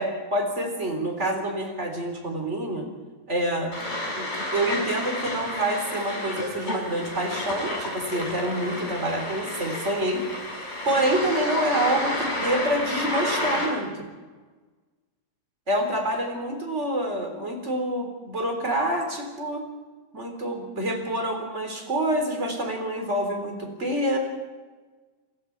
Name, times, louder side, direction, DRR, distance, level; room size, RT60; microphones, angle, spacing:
voice 1, 0.0-2.9 3.3-3.7 4.2-10.2 10.8-14.1 15.7-19.6 20.1-24.2, right 1 dB, 20° right, 3 dB, 3.7 m, -27 dB
sound 1, 3.7-13.7, left 1 dB, 15° left, 6.3 m, -31 dB
28.5 x 20.5 x 4.7 m, 1.3 s
omnidirectional pair, 3.9 m